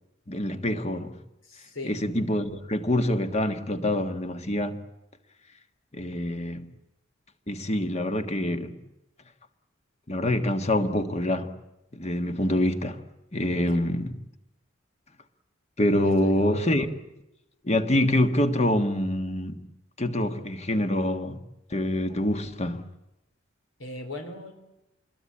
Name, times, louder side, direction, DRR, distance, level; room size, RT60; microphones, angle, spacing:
voice 1, 0.3-1.2 1.8-4.8 5.9-6.7 7.5-8.8 10.1-11.5 11.9-13.0 13.3-14.1 15.8-16.9 17.6-19.6 20.0-21.4 21.7-22.8, left 1 dB, 30° left, 1.6 m, -26 dB
voice 2, 1.4-2.0 13.7-13.8 16.0-16.8 23.8-24.5, left 2 dB, 70° left, 4.2 m, -39 dB
27.0 x 22.0 x 8.8 m
head